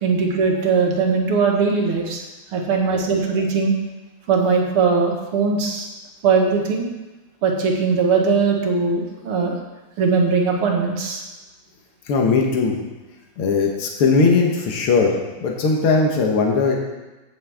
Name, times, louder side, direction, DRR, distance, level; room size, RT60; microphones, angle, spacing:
voice 1, 0.0-2.2 2.5-3.7 4.3-5.9 6.2-6.9 7.4-9.6 10.0-11.2, right 5 dB, 80° right, 1 dB, 2.3 m, -20 dB
voice 2, 12.1-12.8 13.4-15.2 15.4-16.8, left 4 dB, 80° left, 0 dB, 2.1 m, -18 dB
15.5 x 6.5 x 3.5 m, 1.1 s
omnidirectional pair, 2.4 m